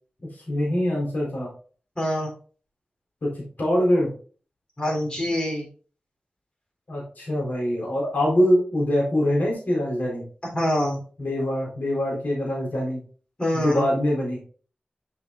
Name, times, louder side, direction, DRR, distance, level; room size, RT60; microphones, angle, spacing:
voice 1, 0.3-1.5 3.2-4.1 6.9-10.2 11.2-13.0 13.5-14.4, equal, 75° left, -3 dB, 4.0 m, -24 dB
voice 2, 2.0-2.3 4.8-5.7 10.5-11.0 13.4-13.9, equal, 30° left, 0 dB, 3.5 m, -25 dB
7.3 x 7.2 x 2.5 m, 0.40 s
cardioid pair, 55°, 3 cm